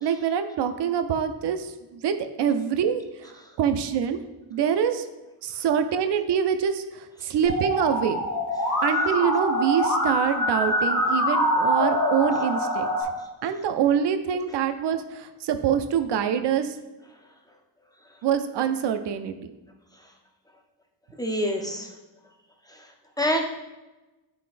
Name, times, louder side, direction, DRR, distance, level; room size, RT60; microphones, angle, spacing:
voice 1, 0.0-3.3 3.6-4.2 4.5-5.1 5.4-8.2 8.8-12.9 13.4-16.8 18.2-19.3, right 8 dB, 75° right, 8 dB, 0.5 m, -25 dB
Musical instrument, 7.5-13.0, equal, 45° left, 1.6 m, -24 dB
voice 2, 21.2-21.9 22.7-23.5, equal, 10° left, 1 dB, 0.6 m, -29 dB
9.0 x 4.1 x 2.5 m, 1.1 s
cardioid pair, 120°, 42 cm